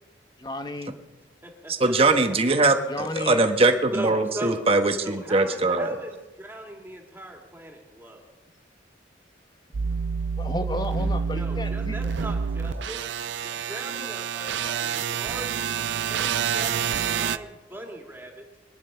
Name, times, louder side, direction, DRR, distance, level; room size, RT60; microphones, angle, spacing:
voice 1, 0.4-0.9 2.9-3.5 10.4-12.0, left 1 dB, 25° left, 8 dB, 1.0 m, -32 dB
voice 2, 1.7-6.0, right 2 dB, 30° right, 6 dB, 1.2 m, -21 dB
voice 3, 3.9-4.6 5.0-8.3 11.3-13.0 13.4-15.7 16.0-18.4, right 1 dB, 10° right, 1 dB, 2.3 m, -39 dB
sound 1, 9.7-17.4, right 6 dB, 75° right, 0.5 m, -28 dB
23.0 x 10.0 x 5.7 m, 1.1 s
head